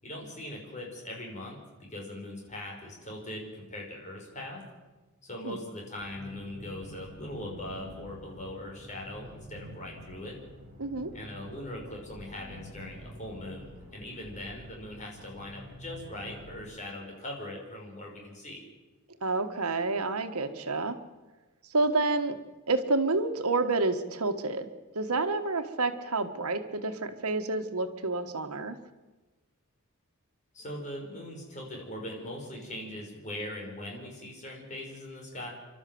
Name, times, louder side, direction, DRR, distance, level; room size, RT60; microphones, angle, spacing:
voice 1, 0.0-4.6 5.2-10.4 11.1-18.6 30.5-35.5, left 1 dB, 35° left, -1 dB, 5.8 m, -41 dB
sound 1, 6.0-16.6, equal, 40° right, 7.2 m, -48 dB
voice 2, 10.8-11.1 19.2-21.0 21.7-22.4 22.7-24.7 24.9-28.8, right 3 dB, 80° right, 8 dB, 1.6 m, -29 dB
30.0 x 12.5 x 7.9 m, 1.2 s
head